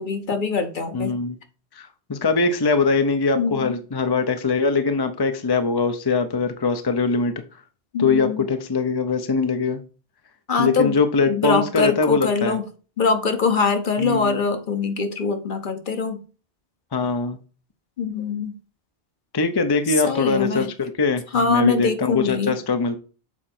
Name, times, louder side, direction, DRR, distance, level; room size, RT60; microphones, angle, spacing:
voice 1, 0.0-1.2 3.3-3.7 7.9-8.5 10.5-11.0 11.3-12.6 13.0-16.2 18.0-18.5 20.0-20.7 21.3-22.6, left 5 dB, 50° left, 1.0 m, -23 dB
voice 2, 0.9-1.4 1.8-7.3 8.0-9.8 10.6-12.6 14.0-14.4 16.9-17.4 19.3-23.0, left 4 dB, 30° left, 0.6 m, -22 dB
7.3 x 4.4 x 4.3 m
omnidirectional pair, 1.1 m